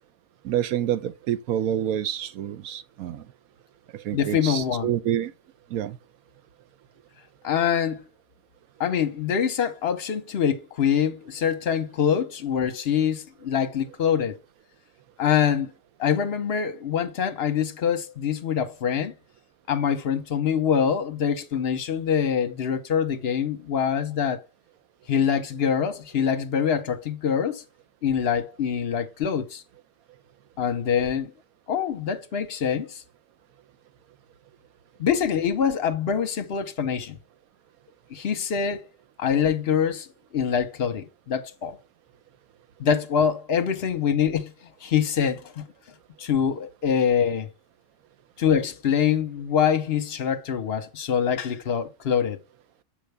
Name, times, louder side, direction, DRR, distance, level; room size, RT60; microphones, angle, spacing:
voice 1, 0.4-3.3 3.9-5.3 5.7-6.0, right 11 dB, 90° right, 1.1 m, -28 dB
voice 2, 4.1-4.9 7.4-8.0 8.8-14.4 15.2-15.7 16.0-19.1 19.7-24.4 25.1-27.6 28.0-29.6 30.6-31.3 31.7-33.0 35.0-37.2 38.1-38.9 39.2-40.1 40.3-41.8 42.8-44.5 44.8-45.7 46.2-47.5 48.4-52.4, left 8 dB, 50° left, 1.0 m, -24 dB
6.7 x 5.3 x 3.4 m
omnidirectional pair, 1.5 m